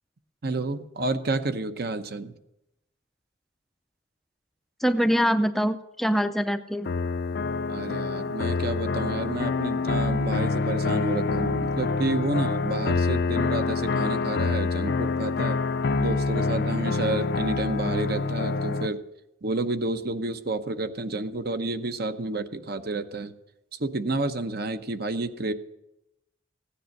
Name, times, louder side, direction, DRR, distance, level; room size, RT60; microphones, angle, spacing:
voice 1, 0.4-2.3 7.7-15.6 16.0-19.0 19.4-23.3 23.8-25.5, right 2 dB, 55° right, 9 dB, 0.9 m, -30 dB
voice 2, 4.8-6.9, equal, ahead, 9 dB, 0.4 m, -24 dB
sound 1, 6.8-18.9, left 4 dB, 55° left, 0.5 m, -26 dB
16.5 x 10.0 x 6.5 m, 0.89 s
head